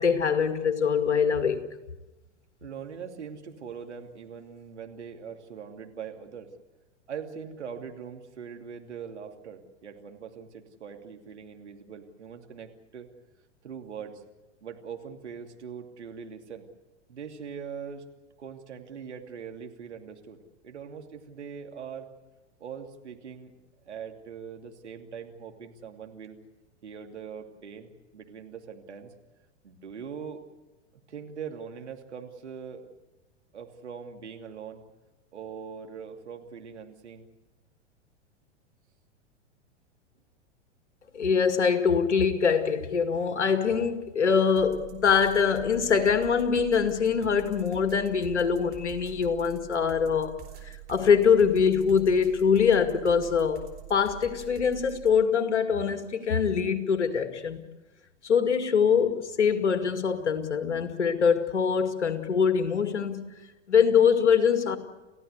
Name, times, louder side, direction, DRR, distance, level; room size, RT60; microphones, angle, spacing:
voice 1, 0.0-1.6 41.1-50.3 50.6-53.6 53.9-57.6 58.2-63.3 63.7-64.8, left 6 dB, 75° left, 8 dB, 2.3 m, -23 dB
voice 2, 2.6-6.5 7.1-13.1 13.6-14.2 14.6-16.7 17.1-18.0 18.4-22.1 22.6-23.5 23.8-26.4 26.8-29.1 29.6-30.4 31.1-32.9 33.5-34.8 35.3-37.3, right 7 dB, 70° right, 4 dB, 2.8 m, -41 dB
sound 1, 44.6-55.2, right 13 dB, 25° right, 4.3 m, -45 dB
29.5 x 15.5 x 8.2 m, 1.1 s
figure-of-eight pair, 95°, 35 cm